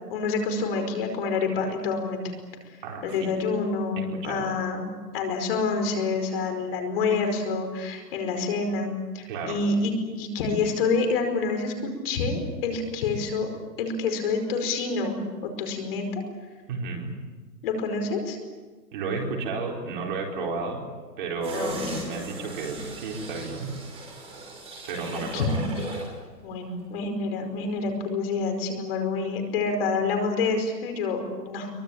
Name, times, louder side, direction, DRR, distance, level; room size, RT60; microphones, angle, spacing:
voice 1, 0.1-2.2 3.0-4.8 5.1-13.5 13.8-16.2 17.6-18.4 21.5-22.0 25.1-25.8 26.4-31.7, left 4 dB, 35° left, 5 dB, 5.1 m, -27 dB
voice 2, 2.8-3.3 4.0-4.5 9.3-9.6 16.7-17.1 18.9-20.8 21.2-23.7 24.9-25.6, right 4 dB, 30° right, 0 dB, 4.7 m, -32 dB
sound 1, 21.4-26.2 26.5-26.6, right 2 dB, 10° right, 5.3 m, -38 dB
24.5 x 24.0 x 8.8 m, 1.3 s
hypercardioid pair, 165°, 49 cm